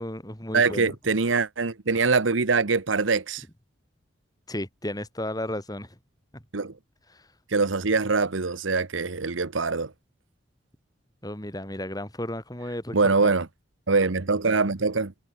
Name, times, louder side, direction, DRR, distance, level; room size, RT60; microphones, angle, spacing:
voice 1, 0.0-0.9 4.5-5.9 6.3-6.4 11.2-13.0 13.2-13.3, left 1 dB, 20° left, 6.7 m, -33 dB
voice 2, 0.5-3.4 6.5-6.7 7.5-9.9 12.9-13.5 13.9-15.1, right 4 dB, 85° right, 1.1 m, -23 dB
head